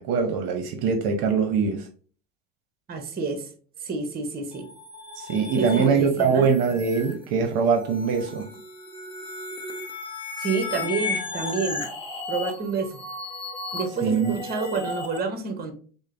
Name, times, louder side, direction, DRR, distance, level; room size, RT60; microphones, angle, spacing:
voice 1, 0.0-1.9 5.2-8.5 14.0-14.4, right 5 dB, 50° right, 0.7 m, -23 dB
voice 2, 2.9-3.5 3.8-4.7 5.5-6.5 10.4-11.9 12.3-13.0 13.7-15.7, right 4 dB, 20° right, 0.8 m, -29 dB
sound 1, 4.5-15.2, left 3 dB, 10° left, 0.9 m, -35 dB
6.2 x 2.1 x 2.5 m
hypercardioid pair, 85°, 50 cm